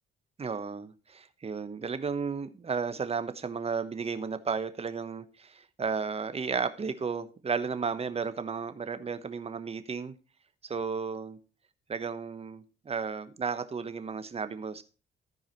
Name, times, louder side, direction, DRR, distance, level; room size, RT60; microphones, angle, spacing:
voice 1, 0.4-10.1 10.6-11.4 11.9-14.8, right 5 dB, 30° right, 1.0 m, -33 dB
13.5 x 4.8 x 4.5 m
cardioid pair, 90°, 20 cm